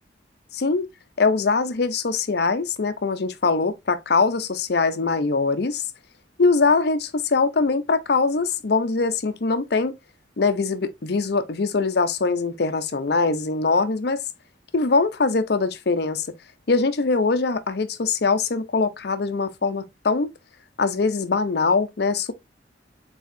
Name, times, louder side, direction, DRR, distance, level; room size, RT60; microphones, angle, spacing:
voice 1, 0.5-0.9 1.2-5.8 6.4-9.9 10.4-14.2 14.7-16.3 16.7-20.3 20.8-22.3, left 4 dB, 60° left, 0.6 m, -22 dB
4.6 x 4.1 x 2.6 m
head